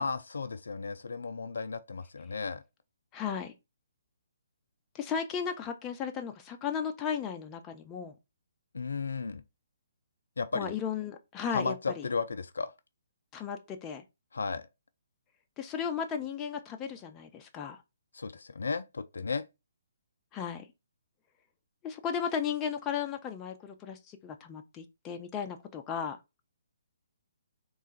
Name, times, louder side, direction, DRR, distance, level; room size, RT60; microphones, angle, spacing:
voice 1, 0.0-2.6 8.7-9.4 10.4-10.8 11.5-12.7 14.3-14.7 18.1-19.4, left 4 dB, 65° left, 0.4 m, -34 dB
voice 2, 3.1-3.5 4.9-8.2 10.5-12.1 13.3-14.0 15.6-17.8 20.3-20.7 21.8-26.2, left 7 dB, 20° left, 0.5 m, -35 dB
3.6 x 3.1 x 4.1 m
figure-of-eight pair, 135°, 0 cm